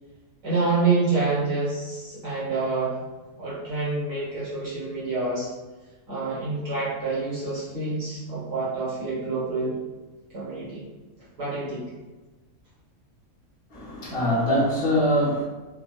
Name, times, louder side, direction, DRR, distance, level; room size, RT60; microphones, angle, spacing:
voice 1, 0.4-3.0 3.4-5.5 6.1-9.8 10.3-10.8 11.4-11.9, right 3 dB, 70° right, -9 dB, 1.6 m, -27 dB
voice 2, 13.7-15.4, equal, 50° left, -6 dB, 0.9 m, -23 dB
4.2 x 2.1 x 2.3 m, 1.2 s
omnidirectional pair, 1.5 m